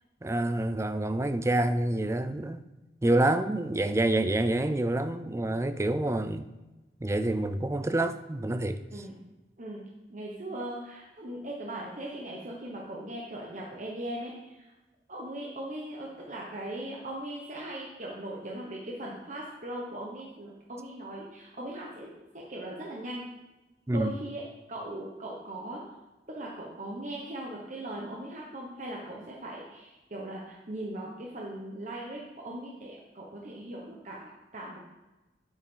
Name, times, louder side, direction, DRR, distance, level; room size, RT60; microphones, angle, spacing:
voice 1, 0.2-2.7 3.0-6.5 7.0-9.0 23.9-24.1, right 1 dB, 15° right, 11 dB, 0.4 m, -27 dB
voice 2, 10.1-14.7 15.1-23.2 23.9-25.8 26.3-34.8, right 1 dB, 40° right, -3 dB, 1.2 m, -39 dB
9.6 x 8.2 x 3.8 m, 1.1 s
head